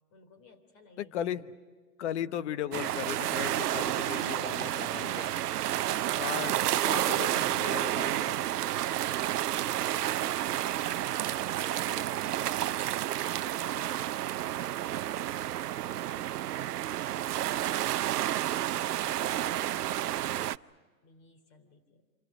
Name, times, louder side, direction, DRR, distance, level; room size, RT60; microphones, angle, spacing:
voice 1, 0.1-1.1 9.4-10.4 10.8-12.9 13.3-16.4 17.5-20.6 21.0-22.1, left 4 dB, 30° left, 9 dB, 3.1 m, -55 dB
voice 2, 1.0-1.5 2.0-5.3 6.2-8.5, left 10 dB, 45° left, 14 dB, 1.0 m, -37 dB
sound 1, 2.7-20.6, right 13 dB, 75° right, 0.6 m, -30 dB
27.0 x 25.5 x 6.1 m, 1.5 s
hypercardioid pair, 150°, 46 cm